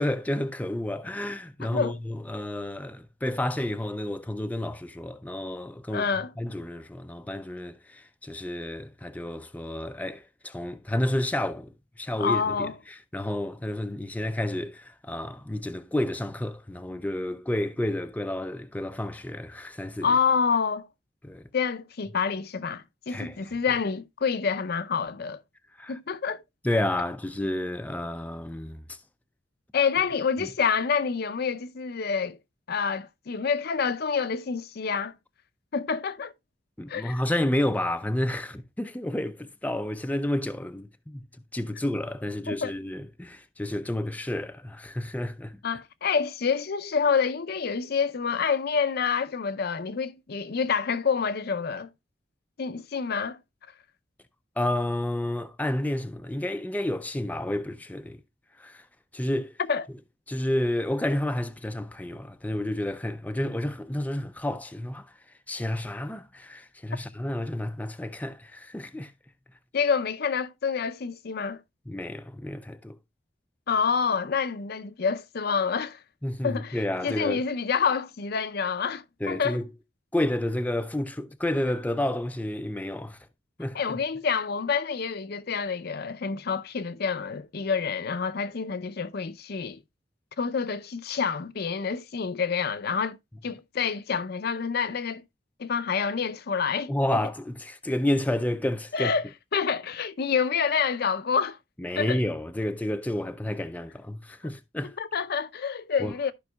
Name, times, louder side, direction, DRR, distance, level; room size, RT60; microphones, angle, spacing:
voice 1, 0.0-6.1 6.4-20.2 21.2-21.5 23.1-23.6 25.8-26.0 26.6-29.0 36.8-41.2 41.5-45.6 54.6-58.2 58.6-58.9 59.1-59.6 60.3-65.1 65.5-69.1 71.9-73.0 76.2-77.4 79.2-79.7 80.1-83.2 83.6-84.0 96.9-99.1 101.8-105.0 106.0-106.1, left 1 dB, 10° left, 0.4 m, -30 dB
voice 2, 1.6-2.0 5.9-6.3 12.2-12.7 20.0-20.9 21.5-25.4 25.9-26.4 29.7-32.4 32.7-35.1 35.7-36.3 36.9-37.2 42.5-42.7 45.6-51.9 52.6-53.4 59.7-59.8 69.7-71.6 73.7-76.0 76.4-76.8 77.0-79.6 83.7-89.8 90.4-93.2 93.4-95.2 95.6-96.9 98.9-99.2 99.5-101.6 102.0-102.2 105.0-106.3, left 6 dB, 55° left, 0.5 m, -27 dB
13.5 x 5.3 x 2.2 m
head